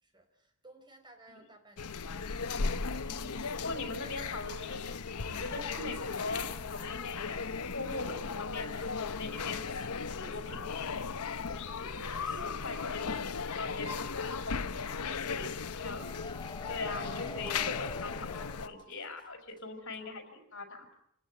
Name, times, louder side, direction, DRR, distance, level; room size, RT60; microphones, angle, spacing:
voice 1, 0.0-2.2 9.7-10.4 11.1-13.0 13.5-15.8, right 1 dB, 20° right, 6 dB, 4.6 m, -58 dB
sound 1, 1.8-18.7, left 5 dB, 90° left, 0.9 m, -37 dB
voice 2, 3.0-4.9 5.2-9.7 10.1-11.0 11.6-13.3 13.6-14.5 15.2-15.5 15.7-16.1 16.7-20.9, left 3 dB, 60° left, 6 dB, 5.0 m, -41 dB
sound 2, 15.8-19.2 19.5-19.6 19.9-20.0, left 3 dB, 20° left, 1.1 m, -46 dB
27.0 x 18.5 x 9.1 m, 0.73 s
head